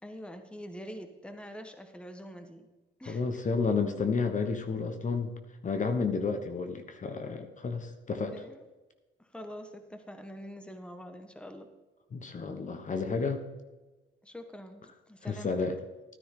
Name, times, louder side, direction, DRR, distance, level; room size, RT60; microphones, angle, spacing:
voice 1, 0.0-2.7 3.0-3.2 8.3-8.6 9.2-11.7 14.2-15.7, equal, 5° left, 7 dB, 1.2 m, -45 dB
voice 2, 3.1-5.3 5.6-8.4 12.1-13.4 15.2-15.8, left 4 dB, 40° left, 7 dB, 1.2 m, -31 dB
12.5 x 9.8 x 3.8 m, 1.1 s
cardioid pair, 90°, 20 cm